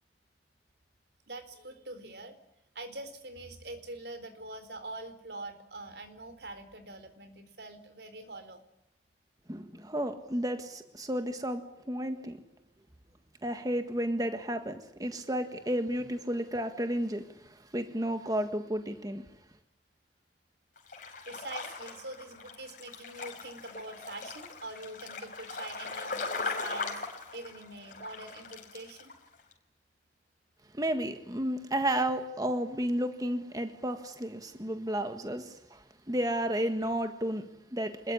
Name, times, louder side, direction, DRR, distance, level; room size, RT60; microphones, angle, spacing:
voice 1, 1.3-2.3 2.7-8.6 21.2-29.1, right 2 dB, 70° right, 10 dB, 4.1 m, -44 dB
voice 2, 9.5-12.4 13.4-19.3 30.7-38.1, right 1 dB, 20° right, 7 dB, 1.6 m, -32 dB
sound 1, 20.8-29.1 29.4-29.5, left 4 dB, 50° left, 5.2 m, -39 dB
27.0 x 21.5 x 10.0 m, 0.82 s
head